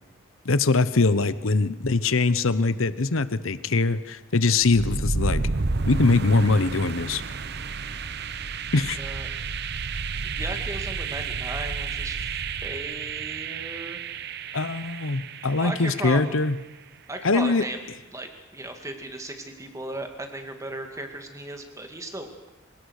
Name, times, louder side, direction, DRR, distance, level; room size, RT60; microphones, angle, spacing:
voice 1, 0.4-5.4 5.9-7.2 8.7-9.0 14.5-16.6 17.2-17.7, left 3 dB, 75° left, 15 dB, 0.9 m, -22 dB
sound 1, 4.6-16.5, right 4 dB, 50° right, 0.8 m, -31 dB
voice 2, 8.9-9.3 10.3-12.3 12.6-14.0 15.6-16.4 17.1-22.5, right 1 dB, 15° right, 5 dB, 2.2 m, -36 dB
25.5 x 18.0 x 6.6 m, 1.0 s
head